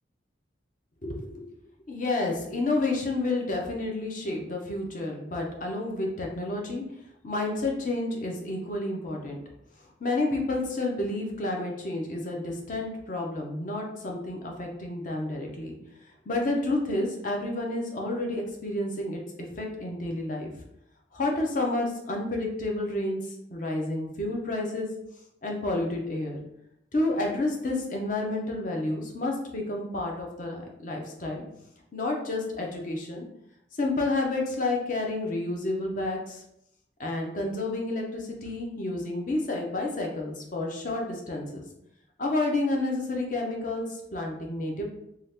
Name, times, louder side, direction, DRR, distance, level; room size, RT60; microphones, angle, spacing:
voice 1, 1.0-1.4 1.9-6.8 7.2-9.4 10.0-15.8 16.3-20.5 21.1-24.9 25.4-26.4 26.9-31.4 31.9-33.2 33.7-36.4 37.0-41.6 42.2-44.8, left 2 dB, 45° left, 0 dB, 0.6 m, -30 dB
2.8 x 2.3 x 3.4 m, 0.79 s
head